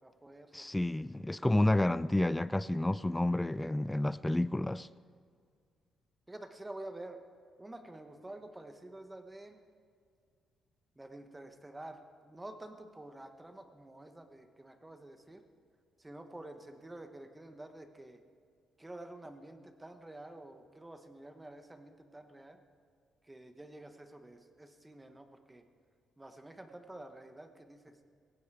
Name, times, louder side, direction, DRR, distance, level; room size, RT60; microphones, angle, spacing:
voice 1, 0.0-0.7 6.3-7.2 7.6-9.6 11.0-15.4 16.0-18.2 18.8-22.6 23.2-25.6 26.2-28.0, right 1 dB, 15° right, 7 dB, 1.2 m, -49 dB
voice 2, 0.5-4.9, left 1 dB, 10° left, 16 dB, 0.3 m, -30 dB
16.5 x 15.0 x 4.8 m, 2.1 s
cardioid pair, 85°, 0 cm